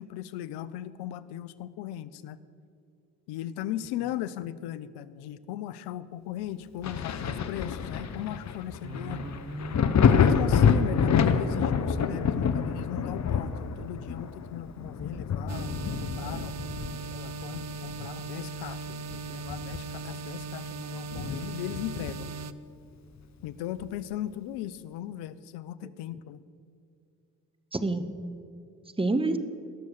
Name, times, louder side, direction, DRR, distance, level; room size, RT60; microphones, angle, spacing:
voice 1, 0.0-2.4 3.3-9.2 10.1-15.7 16.0-16.6 17.1-22.3 23.4-26.4, left 12 dB, 75° left, 16 dB, 0.7 m, -37 dB
Thunder, 6.8-18.2 18.6-20.1 20.4-20.5 21.1-22.4 23.8-23.9, left 6 dB, 45° left, 0.9 m, -27 dB
voice 2, 8.8-10.2 14.8-14.9 27.7-28.0 29.0-29.4, right 2 dB, 15° right, 10 dB, 1.1 m, -30 dB
sound 1, 15.5-22.5, right 4 dB, 45° right, 0.7 m, -38 dB
18.0 x 6.8 x 6.5 m, 2.6 s
hypercardioid pair, 50°, 40 cm